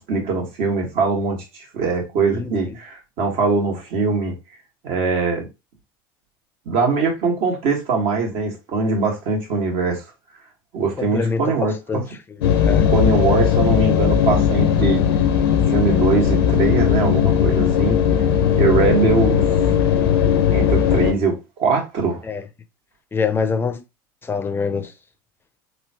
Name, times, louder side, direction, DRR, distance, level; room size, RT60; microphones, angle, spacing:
voice 1, 0.0-4.3 4.8-5.5 6.6-10.0 10.7-12.0 12.8-15.0 15.7-18.0 18.5-19.5 20.5-22.2, right 4 dB, 60° right, 1.5 m, -21 dB
voice 2, 2.3-2.8 11.0-12.0 12.7-12.9 22.2-22.4 23.1-23.8 24.2-24.9, left 5 dB, 20° left, 0.5 m, -25 dB
sound 1, 12.4-21.1, left 8 dB, 80° left, 0.6 m, -18 dB
3.6 x 2.3 x 2.8 m
hypercardioid pair, 95°, 12 cm